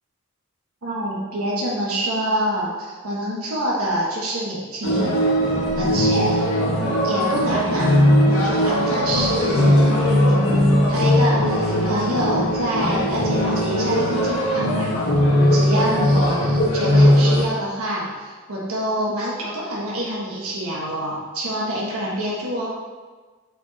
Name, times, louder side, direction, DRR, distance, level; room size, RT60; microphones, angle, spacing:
voice 1, 0.8-5.2 5.8-6.4 7.0-7.9 8.3-14.9 15.5-22.7, right 1 dB, 90° right, -5 dB, 1.3 m, -26 dB
sound 1, 4.8-17.4, left 1 dB, 65° left, 1.5 m, -19 dB
5.9 x 4.8 x 4.1 m, 1.4 s
head